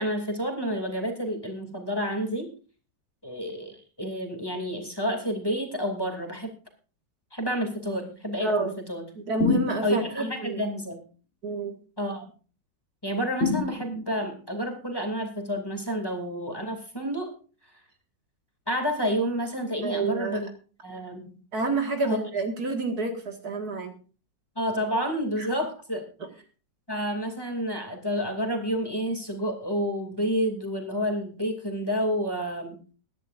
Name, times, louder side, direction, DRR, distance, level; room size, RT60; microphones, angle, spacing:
voice 1, 0.0-2.5 3.2-6.5 7.3-9.0 9.8-11.0 12.0-12.3 13.0-17.3 18.7-20.5 20.8-21.4 22.0-22.2 24.6-26.0 26.9-32.8, equal, 10° left, 4 dB, 2.6 m, -29 dB
voice 2, 8.4-8.7 9.2-10.7 11.4-11.7 19.8-20.4 21.5-23.9 25.4-25.5 26.2-26.3, right 3 dB, 60° right, 4 dB, 2.3 m, -29 dB
sound 1, 9.4-10.3 13.4-14.3, left 3 dB, 45° left, 2.1 m, -27 dB
22.0 x 10.5 x 2.6 m, 0.36 s
omnidirectional pair, 1.9 m